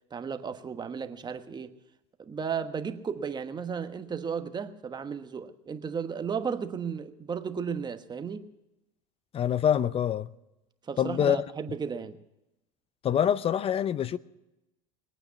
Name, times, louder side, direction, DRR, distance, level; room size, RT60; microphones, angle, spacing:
voice 1, 0.1-1.8 2.2-8.5 10.8-12.2, right 6 dB, 25° right, 1.2 m, -34 dB
voice 2, 9.3-10.3 11.0-11.4 13.0-14.2, left 9 dB, 35° left, 0.7 m, -25 dB
21.0 x 9.0 x 7.1 m
supercardioid pair, 105°, 18 cm